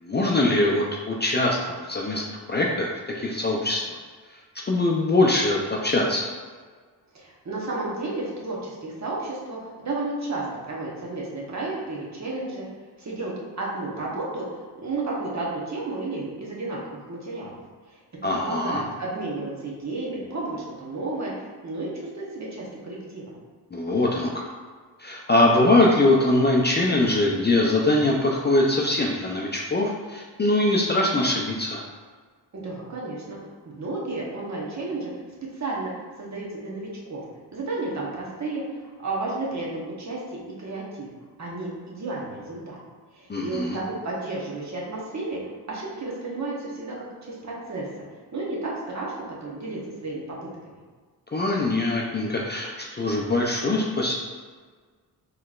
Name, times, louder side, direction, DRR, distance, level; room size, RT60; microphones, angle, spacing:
voice 1, 0.0-4.0 4.6-6.3 18.2-18.8 23.7-24.5 25.0-31.8 43.3-43.8 51.3-54.1, left 2 dB, 25° left, -2 dB, 0.4 m, -22 dB
voice 2, 7.1-12.7 13.0-14.5 14.8-17.6 17.9-18.0 18.3-23.3 32.5-33.4 33.6-35.1 35.6-35.9 36.2-37.2 37.5-40.2 40.6-41.1 41.4-42.8 43.2-45.4 45.7-47.9 48.3-49.1 49.4-50.4 50.7-50.8, right 2 dB, 40° right, -4 dB, 1.1 m, -32 dB
3.8 x 3.2 x 2.4 m, 1.5 s
cardioid pair, 80°, 41 cm